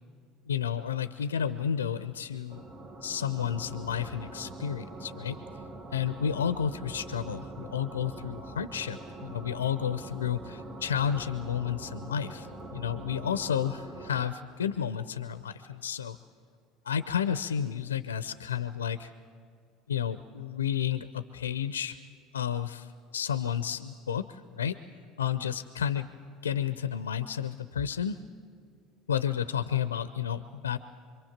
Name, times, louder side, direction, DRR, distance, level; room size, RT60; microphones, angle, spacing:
voice 1, 0.5-2.6 3.0-5.4 5.9-16.2 16.8-19.1 19.9-22.0 22.3-24.8 25.2-26.1 26.4-28.2 29.1-30.8, left 8 dB, 90° left, 12 dB, 0.7 m, -31 dB
sound 1, 2.5-14.3, right 2 dB, 35° right, 2.1 m, -43 dB
26.0 x 23.5 x 7.3 m, 2.2 s
hypercardioid pair, 70°, 0 cm